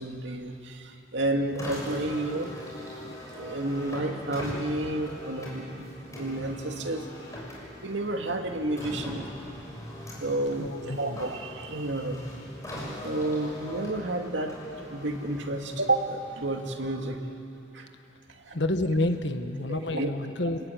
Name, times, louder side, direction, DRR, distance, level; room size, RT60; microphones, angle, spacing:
voice 1, 0.0-2.6 2.9-7.1 7.8-9.3 10.2-12.2 13.0-17.2 17.7-17.9 18.4-18.6 19.7-20.1 20.4-20.6, right 2 dB, 70° right, 3 dB, 2.4 m, -31 dB
Car, 1.5-16.9, equal, 15° left, 6.9 m, -41 dB
voice 2, 10.6-11.2 18.5-20.6, left 1 dB, 65° left, 7 dB, 1.6 m, -29 dB
29.5 x 21.0 x 9.4 m, 2.8 s
head